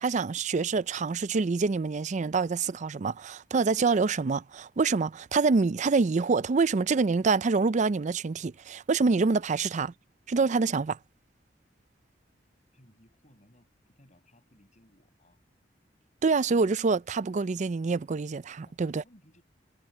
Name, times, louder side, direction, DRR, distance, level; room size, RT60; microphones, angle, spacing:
voice 1, 0.0-9.9 10.3-11.0 16.2-19.0, right 4 dB, 40° right, 0.4 m, -26 dB
voice 2, 12.7-15.4 18.6-19.4, equal, 40° left, 6.9 m, -61 dB
head